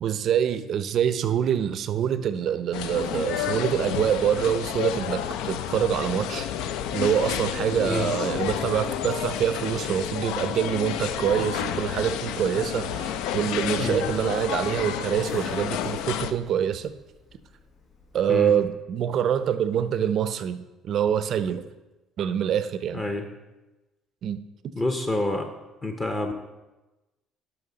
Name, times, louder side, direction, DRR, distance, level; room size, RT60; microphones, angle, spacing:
voice 1, 0.0-6.5 6.9-16.9 18.1-21.7 22.2-23.0 24.2-24.4, right 9 dB, 45° right, 12 dB, 0.5 m, -25 dB
sound 1, 2.7-16.3, left 9 dB, 85° left, 0.4 m, -30 dB
Cough, 13.2-18.6, left 3 dB, 60° left, 2.7 m, -47 dB
voice 2, 22.9-23.3 24.8-25.5 25.8-26.3, left 2 dB, 20° left, 5 dB, 0.7 m, -27 dB
11.0 x 5.7 x 3.9 m, 1.1 s
cardioid pair, 150°, 0 cm